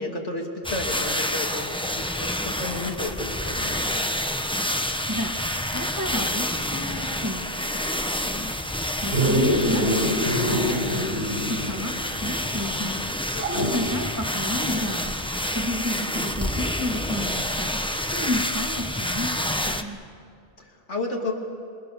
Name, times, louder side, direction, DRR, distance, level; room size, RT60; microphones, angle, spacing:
voice 1, 0.0-4.0 13.3-13.7 20.6-21.3, left 2 dB, 85° left, 0 dB, 3.3 m, -32 dB
sound 1, 0.6-19.8, left 1 dB, 5° left, 0.9 m, -28 dB
voice 2, 5.1-8.5 9.0-11.2 11.5-13.0 13.5-15.1 15.5-17.8 18.1-20.0, left 1 dB, 15° right, 3 dB, 1.7 m, -32 dB
Dog, 9.1-11.9 12.2-12.3 13.4-14.0 16.0-16.1, equal, 65° right, 4.3 m, -24 dB
28.0 x 24.5 x 7.0 m, 2.3 s
omnidirectional pair, 1.2 m